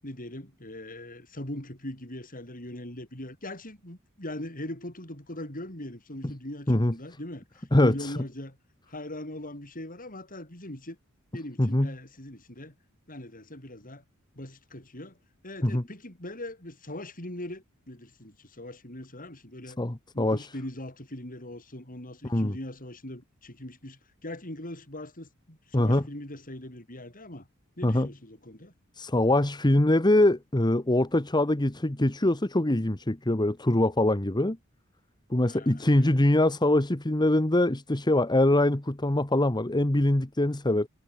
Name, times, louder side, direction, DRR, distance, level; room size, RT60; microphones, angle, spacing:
voice 1, 0.0-8.6 8.9-11.0 11.3-12.7 13.1-14.0 14.3-15.2 15.4-19.8 20.1-27.5 27.8-28.7 35.4-36.2, left 1 dB, 40° left, 7.9 m, -41 dB
voice 2, 7.7-8.1 11.6-11.9 15.6-15.8 19.8-20.5 22.3-22.5 25.7-26.0 27.8-28.1 29.0-34.6 35.3-40.9, left 1 dB, 20° left, 1.3 m, -23 dB
head